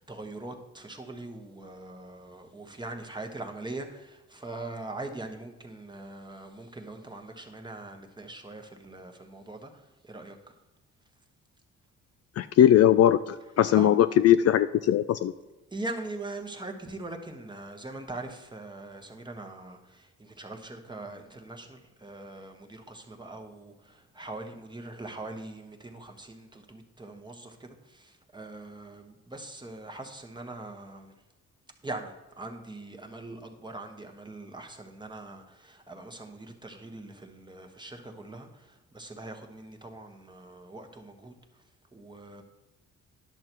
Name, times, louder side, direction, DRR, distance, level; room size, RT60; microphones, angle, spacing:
voice 1, 0.0-9.7 10.0-10.4 13.7-13.9 15.7-31.1 31.8-41.3 41.9-42.4, right 2 dB, 15° right, 4 dB, 1.3 m, -42 dB
voice 2, 12.4-15.3, left 11 dB, 55° left, 12 dB, 0.4 m, -20 dB
10.5 x 6.7 x 4.5 m, 1.1 s
cardioid pair, 90°, 30 cm